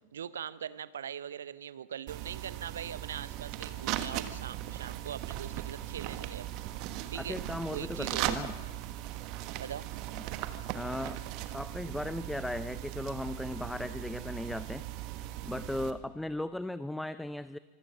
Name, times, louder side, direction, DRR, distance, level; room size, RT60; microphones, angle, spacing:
voice 1, 0.1-6.5 7.1-7.4 7.7-8.4 9.6-9.9, right 8 dB, 65° right, 17 dB, 0.7 m, -41 dB
sound 1, 2.1-15.9, right 13 dB, 40° right, 1.3 m, -38 dB
voice 2, 7.1-8.5 10.7-11.2 11.5-14.9 15.4-17.6, left 1 dB, 5° left, 14 dB, 0.5 m, -37 dB
25.0 x 16.5 x 6.4 m, 1.4 s
figure-of-eight pair, 90°, 0 cm